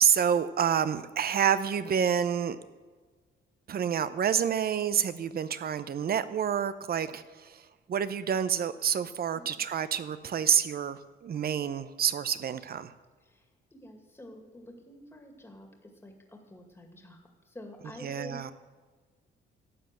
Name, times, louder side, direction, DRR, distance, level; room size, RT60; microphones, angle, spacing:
voice 1, 0.0-2.6 3.7-12.9 18.0-18.5, right 8 dB, 50° right, 13 dB, 0.7 m, -28 dB
voice 2, 13.2-18.5, left 1 dB, 10° left, 3 dB, 2.1 m, -48 dB
12.5 x 7.8 x 7.6 m, 1.4 s
cardioid pair, 90°, 20 cm